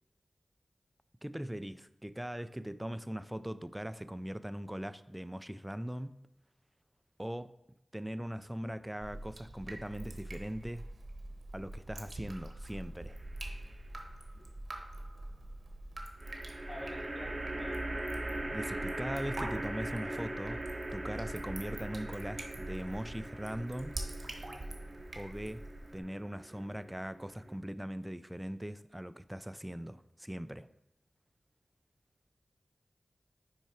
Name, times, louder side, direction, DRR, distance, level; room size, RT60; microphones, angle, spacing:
voice 1, 1.2-6.2 7.2-7.5 7.9-10.8 11.5-13.2 18.5-20.6 20.9-24.0 25.2-25.6 25.9-30.7, equal, 10° right, 0.3 m, -40 dB
Drip, 9.0-26.0, right 1 dB, 60° right, 0.9 m, -45 dB
sound 1, 13.1-13.7 16.2-27.6, right 1 dB, 35° right, 0.7 m, -41 dB
voice 2, 16.7-17.7, left 1 dB, 70° left, 1.4 m, -48 dB
6.0 x 4.7 x 4.4 m
wide cardioid pair, 85°, 0 cm